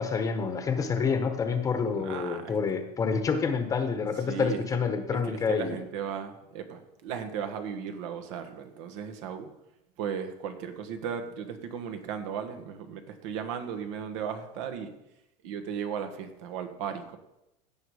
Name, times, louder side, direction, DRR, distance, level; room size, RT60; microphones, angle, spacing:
voice 1, 0.0-5.8, left 5 dB, 20° left, 7 dB, 1.0 m, -28 dB
voice 2, 1.9-2.8 4.3-4.6 5.1-9.5 10.0-14.9 15.4-17.2, right 7 dB, 75° right, 7 dB, 1.5 m, -36 dB
16.0 x 5.5 x 4.9 m, 0.89 s
supercardioid pair, 150°, 16 cm